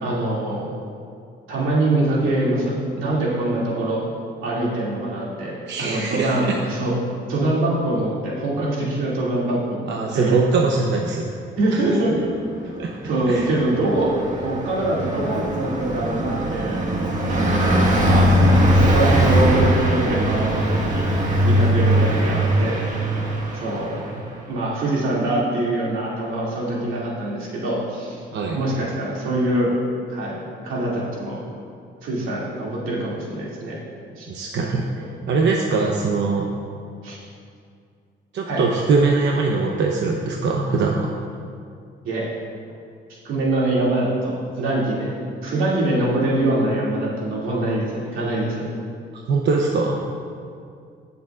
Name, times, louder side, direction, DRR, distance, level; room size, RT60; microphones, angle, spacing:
voice 1, 0.0-0.7 1.5-4.0 4.4-6.9 7.3-10.4 11.6-12.1 13.0-14.1 14.4-16.8 17.3-18.3 18.7-21.1 21.4-22.9 23.5-28.2 28.5-29.7 30.1-30.4 30.6-31.4 32.0-33.8 34.2-34.3 35.0-35.2 37.0-37.2 38.5-38.6 42.0-42.3 43.1-45.1 45.4-48.6, right 1 dB, 85° right, -5 dB, 2.6 m, -24 dB
voice 2, 5.7-6.4 9.9-11.2 11.7-11.8 12.8-12.9 13.3-13.5 21.5-21.7 28.3-28.6 34.3-34.9 35.3-36.5 38.3-41.1 49.1-50.0, right 4 dB, 65° right, 0 dB, 0.9 m, -22 dB
Car passing by, 13.2-24.3, equal, 40° right, 1.6 m, -20 dB
20.0 x 7.0 x 2.5 m, 2.3 s
cardioid pair, 90°, 20 cm